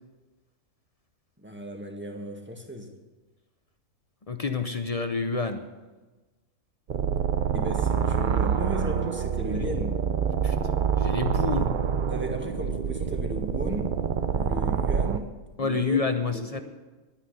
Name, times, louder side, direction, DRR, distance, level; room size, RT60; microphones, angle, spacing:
voice 1, 1.4-2.9 7.5-9.9 12.1-13.9 14.3-15.3 15.6-16.0 16.3-16.6, right 1 dB, 5° right, 2 dB, 1.5 m, -35 dB
voice 2, 4.3-5.6 9.6-9.7 10.4-10.6 11.0-11.7 15.6-16.6, left 4 dB, 40° left, 7 dB, 0.5 m, -28 dB
sound 1, 6.9-15.2, right 7 dB, 55° right, 0.5 m, -26 dB
11.5 x 10.0 x 8.0 m, 1.2 s
omnidirectional pair, 1.7 m